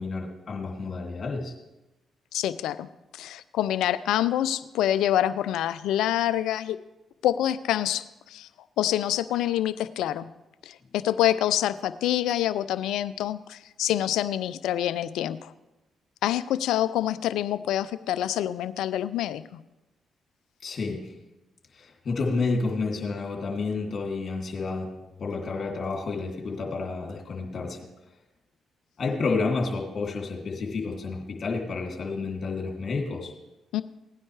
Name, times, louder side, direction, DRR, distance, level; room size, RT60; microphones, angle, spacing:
voice 1, 0.0-1.5 20.6-21.1 21.7-24.9 25.2-27.9 29.0-33.3, left 4 dB, 50° left, 0 dB, 2.6 m, -30 dB
voice 2, 2.3-2.9 3.1-6.8 7.2-8.5 8.8-10.3 10.6-15.5 16.2-19.6 33.7-33.8, left 12 dB, 75° left, 15 dB, 0.4 m, -26 dB
17.0 x 9.7 x 3.3 m, 1.0 s
hypercardioid pair, 50°, 0 cm